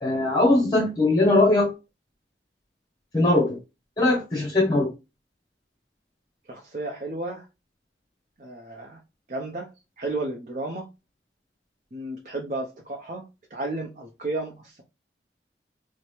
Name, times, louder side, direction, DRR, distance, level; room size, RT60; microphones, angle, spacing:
voice 1, 0.0-1.7 3.1-3.6 4.0-4.9, left 2 dB, 25° left, 0.8 m, -20 dB
voice 2, 6.5-7.5 8.4-9.0 9.3-9.7 10.0-10.9 11.9-14.8, right 2 dB, 45° right, 0.7 m, -33 dB
4.5 x 2.1 x 3.2 m
head